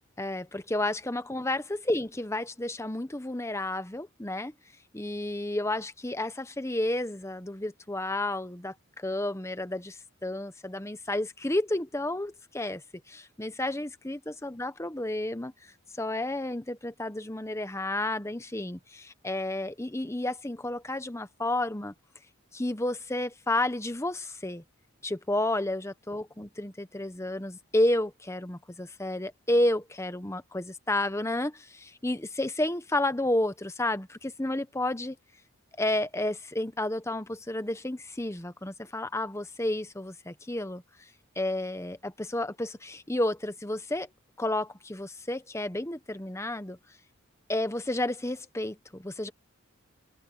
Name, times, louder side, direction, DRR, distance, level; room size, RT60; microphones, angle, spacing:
voice 1, 0.2-4.5 4.9-12.8 13.1-15.5 16.0-21.9 22.5-24.6 25.0-35.2 35.8-40.8 41.4-44.1 44.4-46.8 47.5-49.3, left 1 dB, 15° left, 1.0 m, -31 dB
open air
head